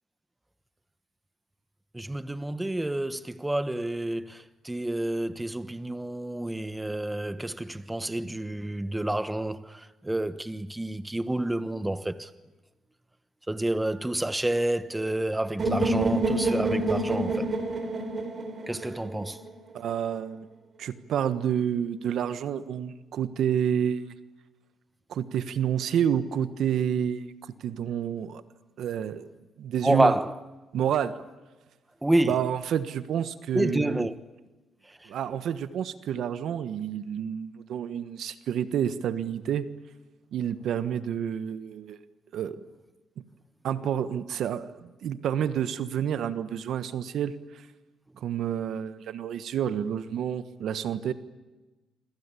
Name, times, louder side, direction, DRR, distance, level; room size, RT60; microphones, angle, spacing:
voice 1, 1.9-12.3 13.5-17.5 18.7-19.4 29.8-30.4 32.0-32.4 33.5-34.1 35.0-35.1, right 1 dB, 10° right, 1.2 m, -29 dB
sound 1, 15.6-19.5, right 2 dB, 40° right, 4.6 m, -27 dB
voice 2, 19.7-20.5 20.8-24.1 25.1-27.3 27.6-28.4 28.8-29.3 29.6-30.1 30.7-31.1 32.2-34.1 35.1-39.7 40.3-42.0 42.3-42.6 43.6-47.3 48.2-51.1, right 9 dB, 70° right, 1.3 m, -29 dB
26.5 x 25.5 x 8.5 m
cardioid pair, 90°, 0 cm